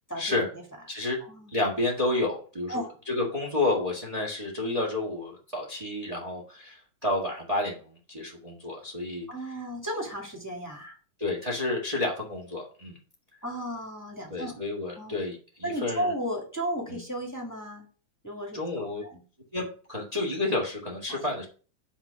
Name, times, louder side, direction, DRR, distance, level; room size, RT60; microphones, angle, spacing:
voice 1, 0.1-0.5 0.9-1.2 1.5-9.3 11.2-13.0 14.3-16.1 16.9-17.0 18.5-19.0 19.5-21.4, left 2 dB, 20° right, -1 dB, 1.8 m, -30 dB
voice 2, 9.3-11.0 13.4-14.6 15.0-15.1 15.6-17.9 18.2-19.2 21.1-21.2, equal, 10° left, -1 dB, 2.0 m, -34 dB
9.4 x 4.3 x 5.7 m, 0.38 s
omnidirectional pair, 2.2 m